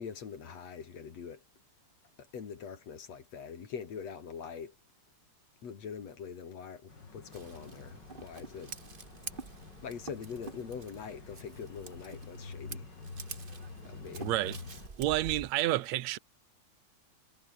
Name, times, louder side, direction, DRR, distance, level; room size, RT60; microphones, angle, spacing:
voice 1, 0.0-1.4 2.3-4.8 5.6-8.8 9.8-12.9 13.9-14.3, left 6 dB, 60° left, 4.1 m, -43 dB
sound 1, 6.9-14.9, left 4 dB, 35° left, 4.0 m, -48 dB
Scissors, 7.3-15.5, right 4 dB, 35° right, 0.8 m, -47 dB
voice 2, 14.2-14.6 15.0-16.2, right 15 dB, 70° right, 2.2 m, -29 dB
omnidirectional pair, 3.4 m